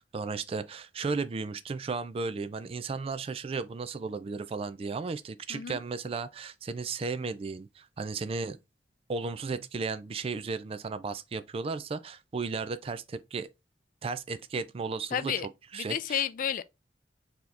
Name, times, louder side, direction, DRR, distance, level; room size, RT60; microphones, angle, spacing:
voice 1, 0.0-8.6 9.1-13.5 14.0-15.3 15.7-16.2, right 4 dB, 35° right, 0.3 m, -34 dB
voice 2, 15.1-15.5 15.7-16.6, left 8 dB, 50° left, 0.3 m, -31 dB
4.2 x 2.9 x 3.2 m
head